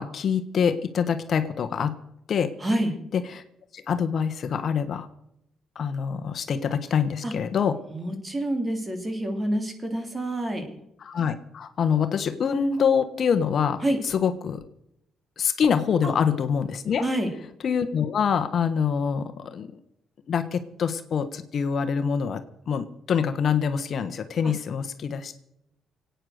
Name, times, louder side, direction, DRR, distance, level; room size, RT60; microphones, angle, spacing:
voice 1, 0.0-1.9 2.3-2.5 3.1-3.4 3.7-5.1 5.7-7.8 11.0-14.6 15.4-17.0 17.6-19.7 20.3-22.4 22.7-25.3, left 7 dB, 55° left, 10 dB, 1.2 m, -25 dB
voice 2, 2.6-2.9 7.2-7.3 7.9-10.7 13.8-14.0 16.0-16.1 17.0-17.3 24.4-24.5, right 1 dB, 25° right, 5 dB, 3.3 m, -27 dB
22.5 x 9.2 x 6.5 m, 0.80 s
cardioid pair, 90°, 0 cm